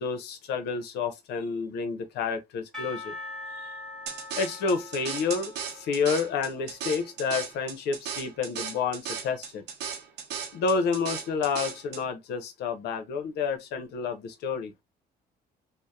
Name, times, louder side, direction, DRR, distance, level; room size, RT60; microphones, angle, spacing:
voice 1, 0.0-3.1 4.3-9.6 10.5-14.7, left 5 dB, 80° left, 0.7 m, -29 dB
Percussion / Church bell, 2.7-7.5, left 2 dB, ahead, 1.0 m, -43 dB
sound 1, 4.1-12.0, right 7 dB, 85° right, 0.8 m, -36 dB
2.8 x 2.1 x 2.2 m
cardioid pair, 110°, 17 cm